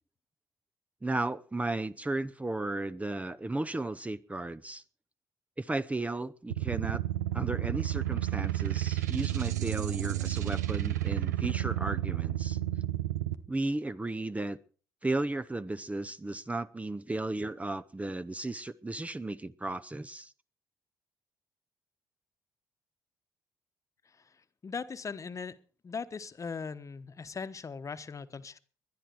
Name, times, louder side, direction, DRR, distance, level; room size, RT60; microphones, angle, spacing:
voice 1, 1.0-4.8 5.6-7.0 7.3-12.6 13.5-14.6 15.0-20.3, right 2 dB, 15° right, 13 dB, 0.7 m, -34 dB
sound 1, 6.5-13.3, right 14 dB, 85° right, 0.7 m, -31 dB
voice 2, 24.6-25.6 25.8-28.6, left 5 dB, 35° left, 12 dB, 1.1 m, -39 dB
20.5 x 11.5 x 4.6 m, 0.40 s
hypercardioid pair, 45°, 9 cm